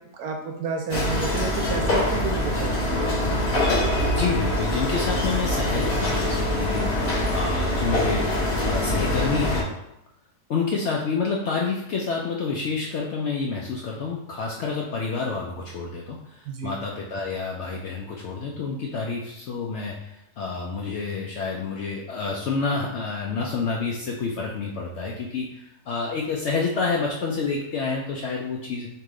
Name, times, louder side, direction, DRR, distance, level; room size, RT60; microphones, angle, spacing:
voice 1, 0.2-3.0 16.5-16.7, right 5 dB, 70° right, 3 dB, 1.0 m, -30 dB
sound 1, 0.9-9.6, left 1 dB, 60° left, 1.6 m, -24 dB
voice 2, 4.1-9.7 10.5-28.9, left 4 dB, 90° left, -1 dB, 0.6 m, -29 dB
4.7 x 2.9 x 3.6 m, 0.82 s
omnidirectional pair, 1.8 m